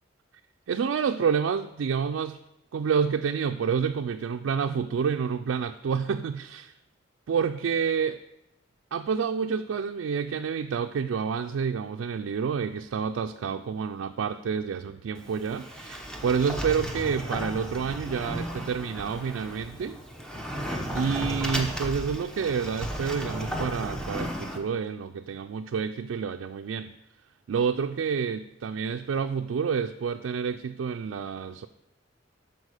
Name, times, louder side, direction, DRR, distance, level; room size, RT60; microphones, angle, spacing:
voice 1, 0.7-2.4 2.7-6.7 7.3-8.2 8.9-20.0 20.9-26.9 27.5-31.7, right 6 dB, 85° right, 5 dB, 0.3 m, -29 dB
Sliding door, 15.1-24.6, equal, 5° left, 0.8 m, -34 dB
13.0 x 4.5 x 4.9 m, 0.88 s
head